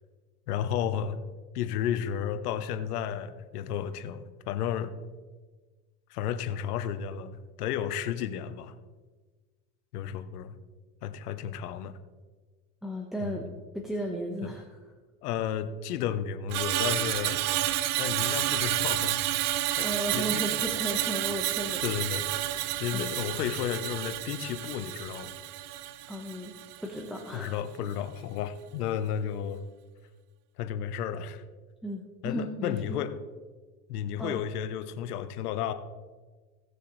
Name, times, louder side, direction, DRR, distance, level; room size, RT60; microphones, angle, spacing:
voice 1, 0.5-1.2 1.5-4.9 6.1-8.7 9.9-10.5 11.0-12.0 13.2-13.5 14.4-14.5 15.2-17.4 18.0-19.9 20.1-20.4 21.8-22.3 22.8-25.3 27.3-29.6 30.6-31.4 32.2-33.1 33.9-35.7, left 9 dB, 80° left, 11 dB, 1.0 m, -33 dB
voice 2, 12.8-13.5 13.7-14.8 19.5-21.8 22.9-23.2 26.1-26.5 26.8-27.5 31.8-33.0 34.2-34.4, equal, ahead, 0 dB, 1.3 m, -35 dB
Screech, 16.5-26.9 27.2-27.5, right 14 dB, 85° right, 0.7 m, -30 dB
17.5 x 6.7 x 3.3 m, 1.3 s
hypercardioid pair, 90°, 45 cm